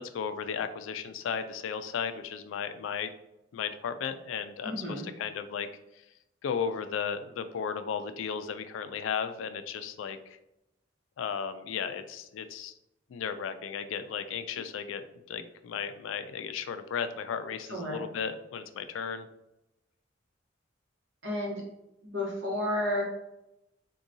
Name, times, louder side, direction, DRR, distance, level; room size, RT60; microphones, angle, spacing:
voice 1, 0.1-3.1 3.5-5.7 6.4-10.4 11.2-12.7 13.1-19.3, left 7 dB, 85° left, 10 dB, 0.3 m, -35 dB
voice 2, 4.6-5.1 14.5-14.6 17.7-18.0 21.2-21.6 22.0-23.0, left 1 dB, 70° right, -3 dB, 1.0 m, -32 dB
3.7 x 2.3 x 2.6 m, 0.87 s
head